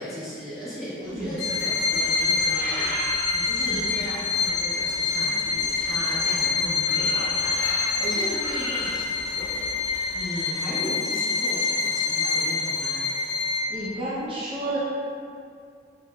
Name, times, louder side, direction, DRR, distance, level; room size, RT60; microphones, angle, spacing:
voice 1, 0.0-2.8 3.3-13.0, equal, ahead, -13 dB, 1.0 m, -36 dB
sound 1, 1.0-10.3, equal, 30° left, 0.9 m, -39 dB
voice 2, 1.0-1.4 3.6-3.9 13.7-14.8, right 1 dB, 30° right, -9 dB, 0.6 m, -31 dB
Bowed string instrument, 1.4-13.9, left 4 dB, 70° left, 0.4 m, -26 dB
3.5 x 3.2 x 2.3 m, 2.3 s
head